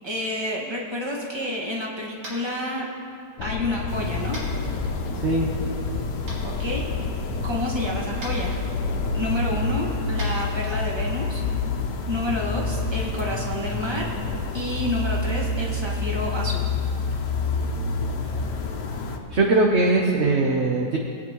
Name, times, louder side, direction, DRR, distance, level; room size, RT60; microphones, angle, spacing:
voice 1, 0.0-2.8 3.4-4.4 6.4-6.8 7.4-8.6 9.1-11.4 12.1-14.1 14.5-16.7, left 1 dB, 15° right, -3 dB, 1.6 m, -29 dB
Tap, 2.2-2.5 4.3-4.5 6.3-6.4 8.2-8.3 10.1-10.3, equal, 75° right, 3.4 m, -37 dB
sound 1, 3.4-14.7, left 5 dB, 90° left, 1.4 m, -33 dB
sound 2, 3.9-19.2, left 3 dB, 75° left, 1.5 m, -28 dB
voice 2, 5.1-5.5 19.3-21.0, right 2 dB, 50° right, 0 dB, 0.9 m, -20 dB
20.5 x 8.8 x 3.0 m, 2.5 s
omnidirectional pair, 1.9 m